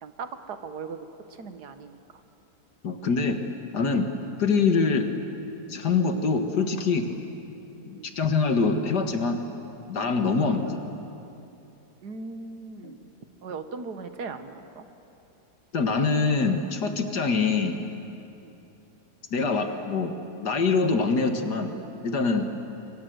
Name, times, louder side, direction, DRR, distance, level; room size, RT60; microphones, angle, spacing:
voice 1, 0.0-1.1 1.4-2.0 4.1-4.3 7.8-8.1 10.0-10.1 12.0-13.0 13.4-14.8 18.4-18.5, right 4 dB, 75° right, 8 dB, 1.9 m, -38 dB
voice 2, 2.8-3.4 3.7-4.1 4.4-5.1 5.7-7.1 7.9-9.4 9.9-10.8 12.8-13.0 15.7-17.8 19.3-20.1 20.4-21.7 22.0-22.4, left 4 dB, 80° left, 6 dB, 2.4 m, -24 dB
27.5 x 24.0 x 8.0 m, 2.8 s
omnidirectional pair, 1.8 m